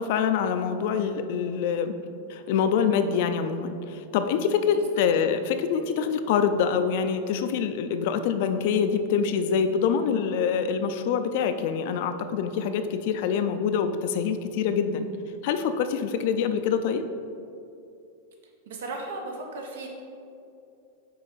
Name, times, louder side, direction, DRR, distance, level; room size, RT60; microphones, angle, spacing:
voice 1, 0.0-2.0 2.3-15.1 15.4-17.1, left 7 dB, 55° left, 9 dB, 0.4 m, -25 dB
voice 2, 18.7-19.9, right 2 dB, 85° right, 1 dB, 1.0 m, -35 dB
5.5 x 4.7 x 4.0 m, 2.6 s
supercardioid pair, 150°, 0 cm